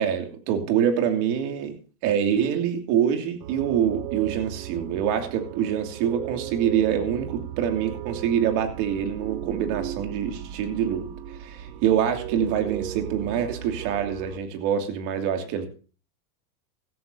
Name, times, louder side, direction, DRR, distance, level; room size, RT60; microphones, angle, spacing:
voice 1, 0.0-1.7 2.0-11.1 11.4-15.7, right 9 dB, 60° right, 6 dB, 2.9 m, -25 dB
sound 1, 3.4-14.4, right 12 dB, 85° right, 1.1 m, -36 dB
16.5 x 14.0 x 2.8 m, 0.37 s
supercardioid pair, 120°, 48 cm